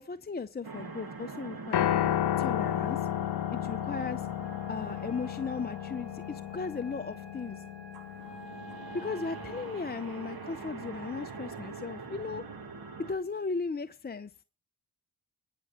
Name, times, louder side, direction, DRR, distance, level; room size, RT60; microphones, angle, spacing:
voice 1, 0.0-2.0 2.4-3.1 3.5-4.3 4.7-7.6 8.9-12.4 13.0-14.3, left 4 dB, 25° left, 0.5 m, -36 dB
sound 1, 0.6-13.1, right 4 dB, 55° right, 2.0 m, -45 dB
Piano, 1.7-10.0, left 11 dB, 65° left, 0.6 m, -33 dB
Wind instrument woodwind instrument, 4.4-9.8, equal, ahead, 3.5 m, -50 dB
11.0 x 6.1 x 7.3 m
cardioid pair, 45°, 43 cm